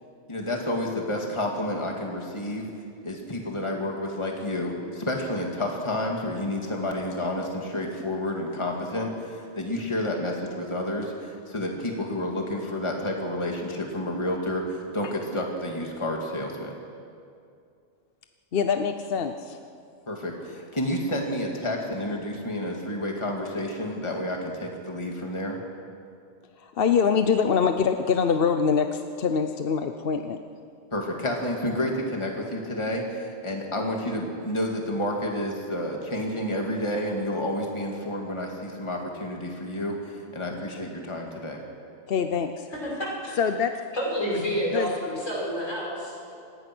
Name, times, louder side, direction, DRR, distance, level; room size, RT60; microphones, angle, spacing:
voice 1, 0.3-2.7 3.0-16.7 20.1-25.6 30.9-41.6, left 1 dB, 25° left, 0 dB, 2.4 m, -30 dB
voice 2, 18.5-19.6 26.6-30.4 42.1-42.7 43.4-43.7 44.7-44.9, left 6 dB, 55° left, 7 dB, 0.9 m, -24 dB
voice 3, 42.7-43.4 43.9-46.3, equal, 80° left, -3 dB, 6.8 m, -29 dB
26.0 x 19.5 x 6.2 m, 2.4 s
omnidirectional pair, 1.3 m